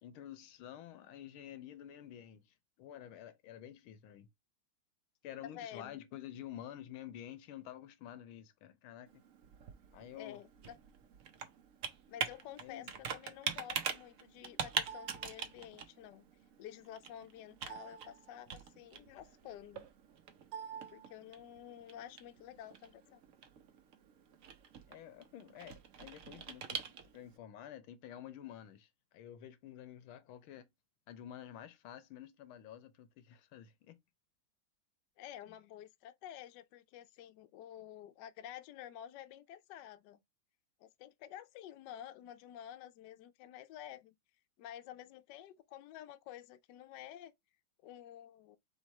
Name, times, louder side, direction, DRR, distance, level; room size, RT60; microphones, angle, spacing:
voice 1, 0.0-2.4 2.8-4.3 5.2-9.2 9.9-10.4 12.6-12.9 24.9-30.7 31.1-34.0, left 11 dB, 85° left, 1.6 m, -50 dB
voice 2, 5.5-6.0 10.2-10.8 12.1-16.3 16.6-19.9 20.9-23.2 35.2-40.2 40.8-44.1 44.6-47.3 47.8-48.6, left 11 dB, 70° left, 1.0 m, -50 dB
Computer keyboard, 9.1-27.4, right 7 dB, 65° right, 0.8 m, -44 dB
3.6 x 3.5 x 4.2 m
omnidirectional pair, 2.2 m